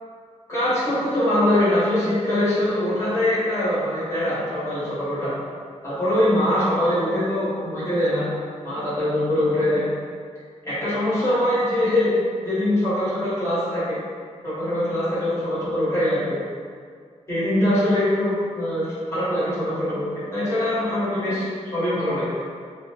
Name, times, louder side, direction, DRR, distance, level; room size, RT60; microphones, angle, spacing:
voice 1, 0.5-5.3 5.8-8.3 8.6-9.8 10.6-12.2 12.4-14.0 14.4-16.4 17.3-21.5 21.7-22.3, left 1 dB, 25° left, -11 dB, 1.1 m, -23 dB
2.6 x 2.1 x 2.8 m, 2.1 s
wide cardioid pair, 155°, 12 cm